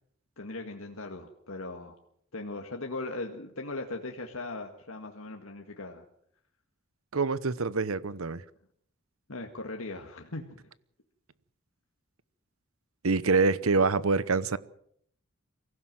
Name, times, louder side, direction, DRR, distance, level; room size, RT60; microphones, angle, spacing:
voice 1, 0.4-2.0 2.3-6.0 9.3-10.7, left 2 dB, 80° left, 1.9 m, -39 dB
voice 2, 7.1-8.4 13.0-14.6, right 4 dB, 85° right, 0.9 m, -25 dB
24.0 x 16.0 x 7.7 m
head